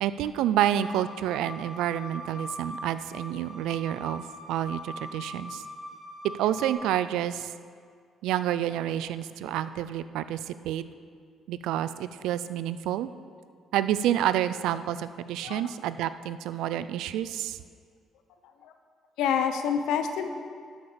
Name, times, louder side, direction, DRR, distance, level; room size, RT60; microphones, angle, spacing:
voice 1, 0.0-5.6 6.2-7.5 8.2-10.8 11.5-13.1 13.7-17.6, right 11 dB, 85° right, 13 dB, 0.4 m, -29 dB
sound 1, 0.7-6.7, left 1 dB, 20° left, 3.1 m, -42 dB
voice 2, 19.2-20.3, left 7 dB, 85° left, 7 dB, 1.0 m, -28 dB
11.5 x 6.5 x 6.9 m, 2.1 s
cardioid pair, 90°, 0 cm